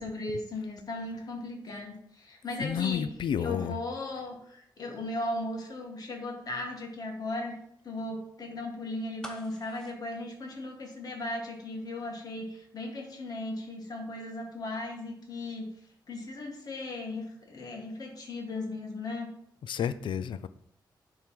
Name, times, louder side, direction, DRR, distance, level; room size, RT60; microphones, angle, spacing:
voice 1, 0.0-3.1 3.4-7.6 7.8-15.7 16.1-19.3, left 2 dB, 50° left, 1 dB, 1.8 m, -37 dB
voice 2, 2.6-3.7 19.6-20.5, left 8 dB, 85° left, 14 dB, 0.4 m, -31 dB
sound 1, 9.2-11.2 11.5-11.6, equal, 10° left, 0.9 m, -47 dB
10.5 x 3.7 x 4.7 m, 0.70 s
wide cardioid pair, 145°, 8 cm